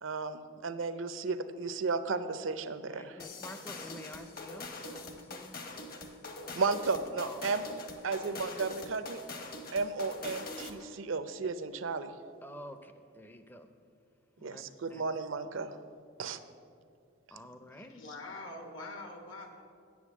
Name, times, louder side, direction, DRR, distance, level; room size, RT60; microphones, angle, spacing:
voice 1, 0.0-3.2 6.6-7.6 8.0-9.2 9.7-12.1 14.4-15.8 16.2-16.4, right 4 dB, 70° right, 11 dB, 0.6 m, -34 dB
voice 2, 2.9-5.6 7.2-7.4 12.4-13.7 14.4-14.6 14.9-15.0 17.3-18.0, left 1 dB, 10° left, 9 dB, 0.5 m, -49 dB
sound 1, 3.2-10.9, left 2 dB, 45° left, 1.0 m, -43 dB
voice 3, 17.7-19.5, left 2 dB, 70° left, 4 dB, 1.2 m, -44 dB
8.5 x 7.6 x 7.2 m, 2.3 s
head